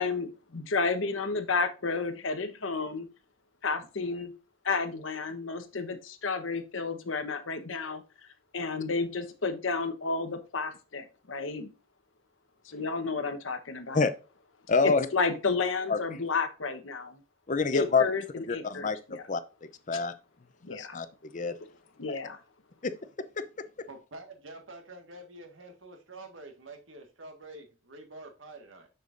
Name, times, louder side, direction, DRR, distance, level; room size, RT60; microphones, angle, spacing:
voice 1, 0.0-3.1 3.6-4.3 4.6-8.0 8.5-11.7 12.6-14.1 14.8-17.2 17.7-19.3 20.6-21.0 22.0-22.4, left 4 dB, 90° left, 1.1 m, -31 dB
voice 2, 14.7-15.1 15.9-16.0 17.5-18.0 18.5-20.1 20.7-21.6 22.1-22.2 22.8-22.9, left 4 dB, 40° left, 0.6 m, -27 dB
voice 3, 23.9-28.9, right 2 dB, 85° right, 1.7 m, -47 dB
6.8 x 6.6 x 2.6 m
head